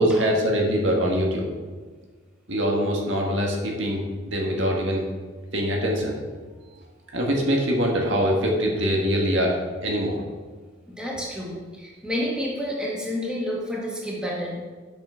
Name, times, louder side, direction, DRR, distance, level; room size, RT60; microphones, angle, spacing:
voice 1, 0.0-1.5 2.5-5.0 5.5-6.2 7.1-10.2, equal, 65° right, -1 dB, 1.8 m, -23 dB
voice 2, 10.9-14.7, equal, 5° right, -5 dB, 2.1 m, -30 dB
8.6 x 6.4 x 5.7 m, 1.4 s
head